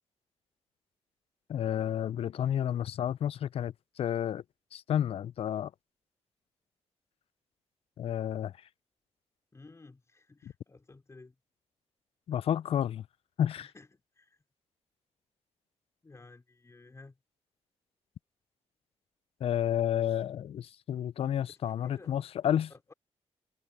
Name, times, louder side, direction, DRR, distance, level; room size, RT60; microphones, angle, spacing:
voice 1, 1.5-4.4 4.7-5.7 8.0-8.5 12.3-13.1 13.4-13.7 19.4-22.7, left 10 dB, 60° left, 0.4 m, -31 dB
voice 2, 9.5-11.4 13.6-14.4 16.0-17.2 21.7-22.2 22.7-22.9, left 3 dB, 25° left, 4.3 m, -54 dB
cardioid pair, 90°, 11 cm